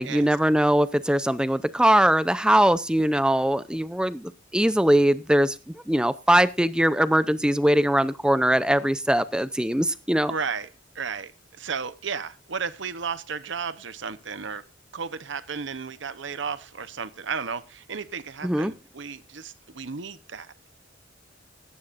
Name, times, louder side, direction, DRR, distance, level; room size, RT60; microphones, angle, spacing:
voice 1, 0.0-5.6 5.9-10.3 18.4-18.7, right 1 dB, 5° right, 14 dB, 0.5 m, -21 dB
voice 2, 10.3-10.7 10.9-11.3 11.6-14.6 14.9-20.7, right 5 dB, 65° right, 13 dB, 0.9 m, -33 dB
17.5 x 14.5 x 2.6 m, 0.29 s
head